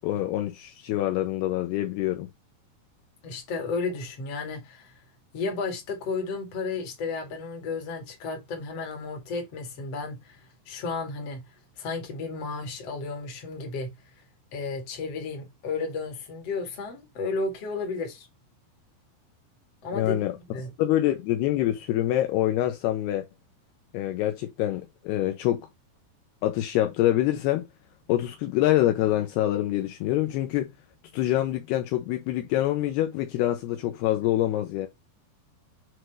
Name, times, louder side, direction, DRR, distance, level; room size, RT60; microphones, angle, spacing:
voice 1, 0.0-2.3 19.9-20.3 20.8-23.3 23.9-25.6 26.4-27.7 28.1-30.7 31.1-34.9, left 14 dB, 80° left, 2.7 m, -25 dB
voice 2, 3.2-5.0 5.3-10.4 10.7-11.4 11.8-13.9 14.5-18.3 19.8-20.7, left 4 dB, 45° left, 2.5 m, -33 dB
7.9 x 3.4 x 4.5 m
omnidirectional pair, 4.9 m